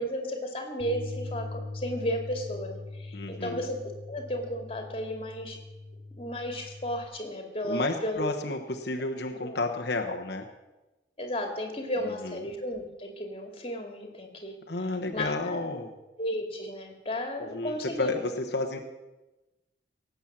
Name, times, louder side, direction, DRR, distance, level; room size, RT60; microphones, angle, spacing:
voice 1, 0.0-3.8 4.1-5.6 6.2-8.3 9.4-9.6 11.2-14.5 15.1-15.6 16.2-18.1, equal, 30° left, 4 dB, 2.4 m, -34 dB
Bass guitar, 0.8-7.0, left 2 dB, 85° right, 1.8 m, -41 dB
voice 2, 3.1-3.6 7.6-10.5 12.0-12.4 14.7-15.9 17.4-18.8, left 2 dB, 65° left, 3 dB, 1.2 m, -31 dB
18.0 x 8.2 x 7.4 m, 1.1 s
head